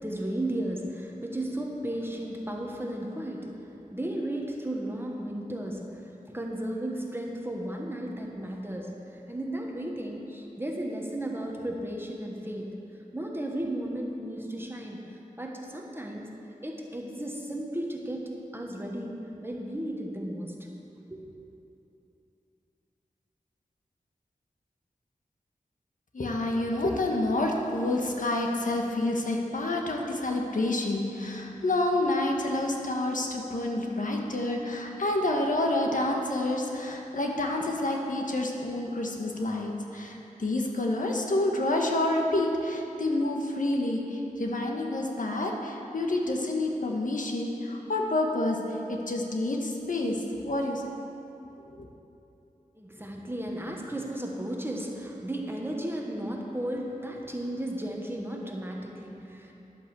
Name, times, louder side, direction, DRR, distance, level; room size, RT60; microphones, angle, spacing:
voice 1, 0.0-3.6 3.9-12.7 13.1-16.3 16.6-20.5 21.1-21.4 52.7-59.5, right 1 dB, 15° right, 0 dB, 1.3 m, -34 dB
voice 2, 26.1-50.8 51.8-51.9, left 1 dB, 70° left, 1 dB, 1.4 m, -28 dB
11.0 x 8.2 x 7.0 m, 2.9 s
wide cardioid pair, 75°, 14 cm